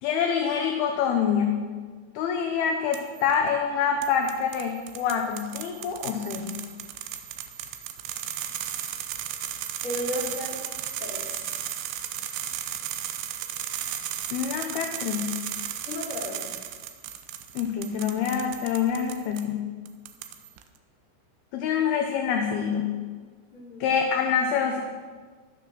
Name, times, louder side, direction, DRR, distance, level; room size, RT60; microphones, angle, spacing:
voice 1, 0.0-1.6 2.1-6.5 14.3-15.4 17.5-19.7 21.5-22.9 23.8-24.8, left 7 dB, 75° left, 4 dB, 2.5 m, -26 dB
sound 1, 2.9-3.4 4.0-19.5 19.9-20.6, right 11 dB, 85° right, 3.1 m, -35 dB
voice 2, 9.8-10.6 11.0-11.7 15.9-16.4 23.5-23.9, left 1 dB, 30° left, -5 dB, 3.8 m, -34 dB
13.5 x 12.0 x 6.3 m, 1.5 s
omnidirectional pair, 5.2 m